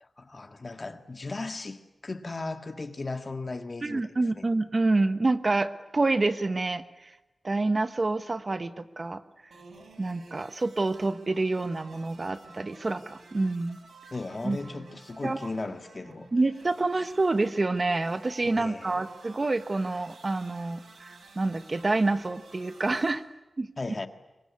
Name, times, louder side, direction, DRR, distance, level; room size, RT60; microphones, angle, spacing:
voice 1, 0.0-4.1 4.4-4.5 14.1-16.3 18.5-19.0 23.8-24.1, left 3 dB, 35° left, 1.7 m, -36 dB
voice 2, 3.8-7.2 7.4-9.2 10.0-13.8 14.4-14.6 15.2-15.5 16.3-23.2 23.6-23.7, right 2 dB, 35° right, 1.1 m, -27 dB
sound 1, 9.5-23.1, right 3 dB, 80° right, 6.0 m, -51 dB
26.0 x 23.0 x 9.6 m
wide cardioid pair, 130°, 0 cm